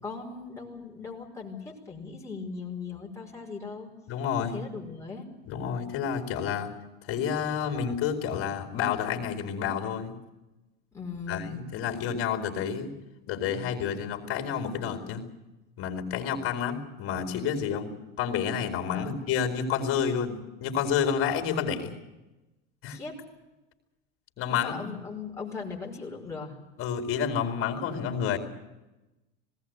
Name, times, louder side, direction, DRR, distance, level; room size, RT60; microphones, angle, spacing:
voice 1, 0.0-3.9 4.4-5.3 10.9-11.6 18.9-19.2 22.9-23.2 24.5-26.5, left 4 dB, 10° left, -2 dB, 5.2 m, -39 dB
voice 2, 4.1-4.6 5.4-6.7 7.1-10.1 11.3-12.9 13.3-15.2 15.8-17.9 18.2-22.0 22.8-23.0 24.4-24.8 26.8-28.4, left 7 dB, 45° left, 5 dB, 4.5 m, -29 dB
19.5 x 18.0 x 9.4 m, 1.0 s
supercardioid pair, 105°, 31 cm